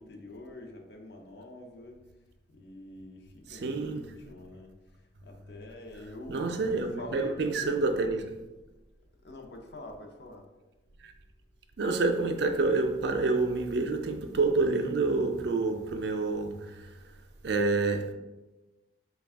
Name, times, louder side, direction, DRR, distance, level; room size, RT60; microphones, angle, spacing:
voice 1, 0.0-2.0 2.5-4.7 5.2-8.0 9.2-10.4, left 2 dB, 65° left, 0.5 m, -46 dB
voice 2, 3.5-4.1 6.3-8.2 11.0-11.1 11.8-17.1 17.4-18.1, right 3 dB, 65° right, 0.4 m, -28 dB
4.1 x 2.3 x 3.4 m
head